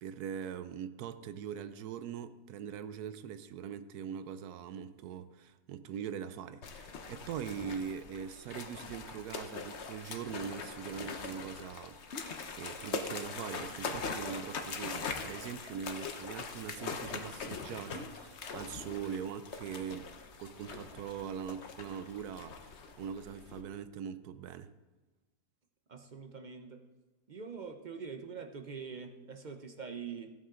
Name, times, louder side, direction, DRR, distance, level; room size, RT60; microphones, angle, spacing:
voice 1, 0.0-12.0 12.2-20.1 20.4-24.7, right 8 dB, 80° right, 1.1 m, -42 dB
sound 1, 6.6-23.6, left 5 dB, 50° left, 1.1 m, -42 dB
voice 2, 25.9-26.8 27.3-30.3, right 5 dB, 45° right, 0.6 m, -44 dB
15.5 x 8.5 x 3.8 m
omnidirectional pair, 1.7 m